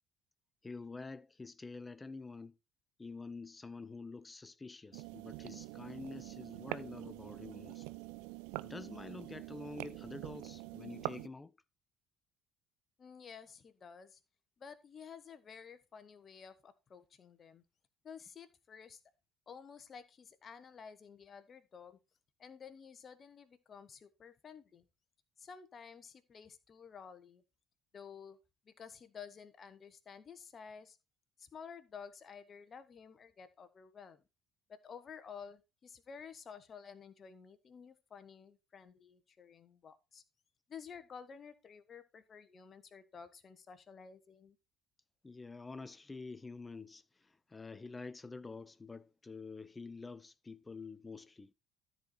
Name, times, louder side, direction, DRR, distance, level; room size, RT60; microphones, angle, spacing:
voice 1, 0.6-2.6 3.0-7.9 8.6-11.5 45.2-51.5, left 3 dB, 20° left, 0.6 m, -48 dB
sound 1, 4.9-11.3, right 20 dB, 65° right, 0.4 m, -45 dB
voice 2, 13.0-14.2 14.6-17.6 18.0-19.0 19.5-22.0 22.4-24.8 25.4-27.4 27.9-28.4 28.6-31.0 31.4-34.2 34.7-40.2 40.7-44.6, left 6 dB, 40° left, 1.2 m, -52 dB
13.5 x 4.6 x 4.3 m
figure-of-eight pair, 55°, 0 cm